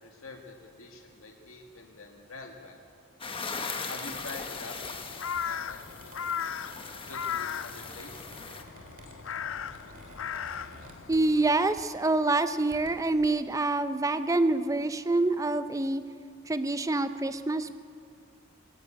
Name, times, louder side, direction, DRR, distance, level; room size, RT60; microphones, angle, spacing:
voice 1, 0.0-2.8 3.9-6.5 7.1-8.3, left 2 dB, 85° left, 2 dB, 1.9 m, -46 dB
sound 1, 3.2-8.6, left 4 dB, 25° left, 1.2 m, -39 dB
Crow, 3.3-11.7, left 8 dB, 70° left, 0.5 m, -38 dB
Squeak, 5.4-11.5 11.8-12.0 12.5-13.3, right 1 dB, 40° right, 2.9 m, -51 dB
voice 2, 11.1-16.0 16.5-17.7, right 2 dB, 15° right, 11 dB, 0.6 m, -26 dB
19.5 x 15.5 x 8.9 m, 2.3 s
head